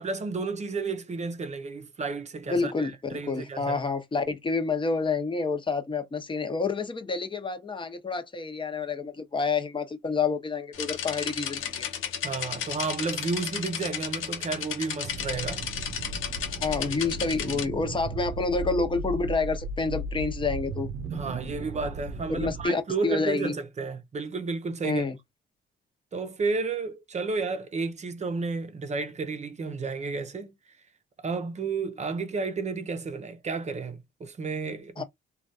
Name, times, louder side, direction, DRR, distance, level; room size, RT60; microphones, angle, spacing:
voice 1, 0.0-3.8 12.2-15.6 21.1-25.0 26.1-30.6 31.2-35.0, right 4 dB, 35° right, 0.6 m, -32 dB
voice 2, 2.5-11.9 16.6-20.9 22.3-23.5 24.8-25.2 35.0-35.1, left 4 dB, 25° left, 0.8 m, -28 dB
sound 1, 10.7-17.7, left 8 dB, 85° left, 0.7 m, -34 dB
sound 2, 15.0-22.7, right 3 dB, 85° right, 0.7 m, -36 dB
3.1 x 2.3 x 2.6 m
cardioid pair, 90°, 20 cm